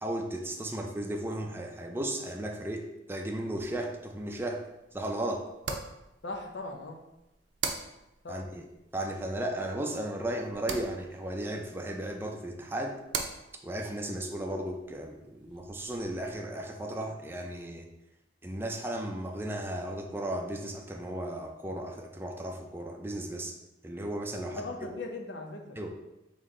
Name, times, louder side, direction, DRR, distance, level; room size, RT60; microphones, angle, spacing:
voice 1, 0.0-4.6 4.9-5.5 8.3-8.7 8.9-13.0 13.6-17.9 18.4-23.6 23.8-24.9 25.8-25.9, right 1 dB, 15° right, 1 dB, 0.4 m, -35 dB
sound 1, 3.5-16.4, right 5 dB, 75° right, 0.5 m, -43 dB
voice 2, 6.2-7.0 8.2-8.4 24.5-25.8, left 3 dB, 80° left, 2 dB, 0.7 m, -39 dB
4.2 x 3.1 x 3.7 m, 0.93 s
head